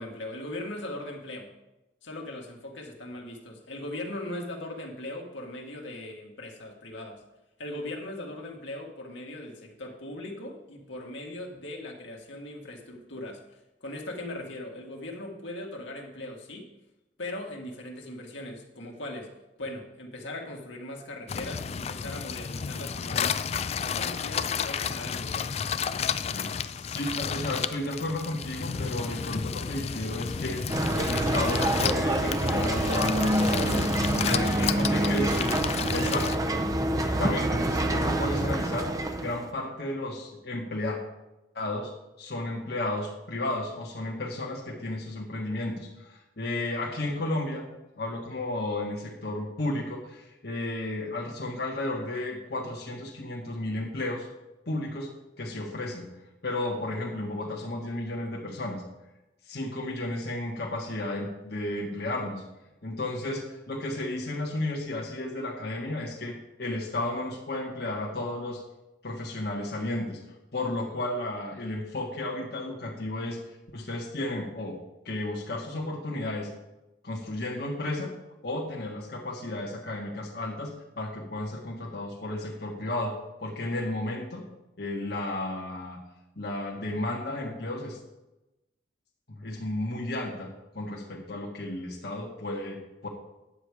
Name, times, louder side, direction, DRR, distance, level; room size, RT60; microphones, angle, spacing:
voice 1, 0.0-1.5 2.0-7.2 7.6-13.4 13.8-16.7 17.2-19.3 19.6-23.4 23.8-25.6 34.2-35.8, left 1 dB, 85° left, 0 dB, 1.9 m, -39 dB
sound 1, 21.3-36.4, left 6 dB, 35° left, 0.3 m, -32 dB
voice 2, 26.1-30.7 30.9-33.9 34.1-35.5 35.9-36.3 37.1-38.9 39.2-41.0 41.5-41.9 42.2-47.7 48.0-54.3 54.7-55.1 55.4-56.1 56.4-58.8 59.4-62.4 62.8-68.6 69.0-70.2 70.5-73.4 73.7-76.5 77.0-78.1 78.4-84.4 84.8-86.0 86.4-88.0 89.3-93.1, left 1 dB, 60° left, -2 dB, 1.6 m, -33 dB
sound 2, 30.7-39.5, right 1 dB, 20° right, 0.6 m, -26 dB
10.0 x 8.3 x 4.9 m, 0.97 s
head